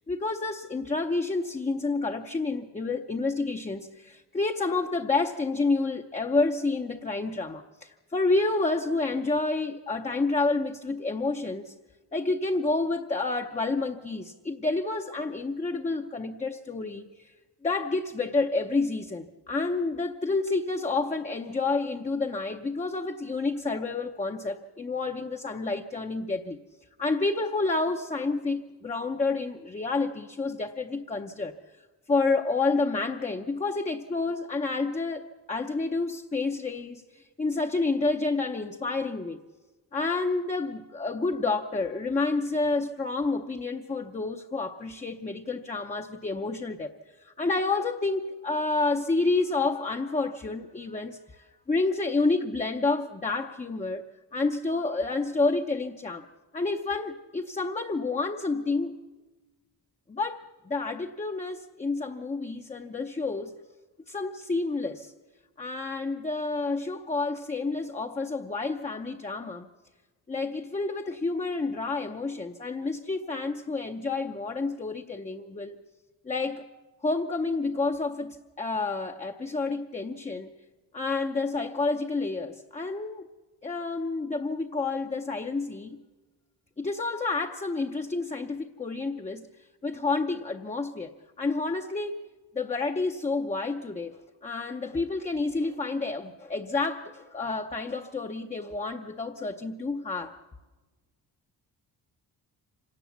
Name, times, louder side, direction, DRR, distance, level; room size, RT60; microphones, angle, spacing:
voice 1, 0.1-11.7 12.1-17.3 17.6-26.6 27.0-31.5 32.1-39.4 39.9-46.9 47.2-54.0 54.3-56.3 56.5-59.0 60.1-63.5 64.1-65.1 65.6-69.7 70.3-75.8 76.2-76.7 77.0-80.5 80.9-83.3 83.6-86.0 86.8-89.5 89.8-91.1 91.4-92.2 92.5-100.4, left 3 dB, 15° left, 3 dB, 0.7 m, -29 dB
26.0 x 18.0 x 7.1 m, 1.3 s
cardioid pair, 135°, 41 cm